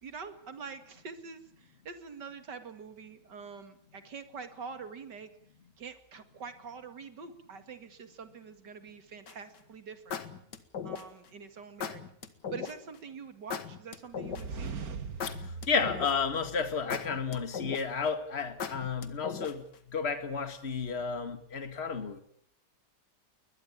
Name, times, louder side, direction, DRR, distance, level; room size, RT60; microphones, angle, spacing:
voice 1, 0.0-5.3 5.8-10.2 10.8-12.0 12.5-14.7, right 5 dB, 85° right, 9 dB, 2.8 m, -45 dB
sound 1, 9.3-9.6 10.1-11.3 11.8-12.7 13.5-14.7 15.2-16.3 16.9-18.0 18.6-19.7, left 7 dB, 85° left, 2.2 m, -38 dB
sound 2, 14.1-17.1, right 4 dB, 60° right, 2.0 m, -41 dB
voice 2, 15.3-22.2, left 5 dB, 40° left, 10 dB, 2.1 m, -32 dB
21.5 x 21.0 x 8.8 m, 0.67 s
omnidirectional pair, 1.8 m